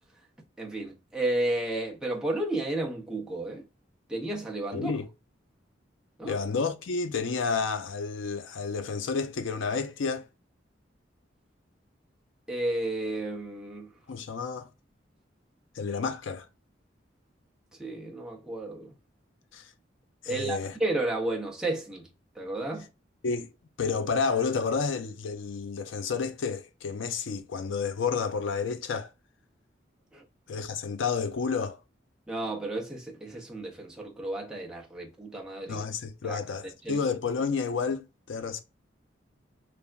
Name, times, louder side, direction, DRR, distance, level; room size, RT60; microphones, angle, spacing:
voice 1, 0.6-3.6 4.1-5.0 6.2-6.4 12.5-13.9 17.8-18.9 20.3-22.1 22.4-22.9 30.1-30.2 32.3-35.9 36.2-36.4 36.8-37.0, right 2 dB, 5° right, 0.6 m, -32 dB
voice 2, 4.7-5.1 6.2-10.3 14.1-14.7 15.8-16.5 19.5-19.6 20.2-20.7 23.2-23.5 23.8-29.1 30.5-31.8 35.7-38.6, left 5 dB, 85° left, 0.5 m, -30 dB
3.3 x 2.1 x 2.3 m
head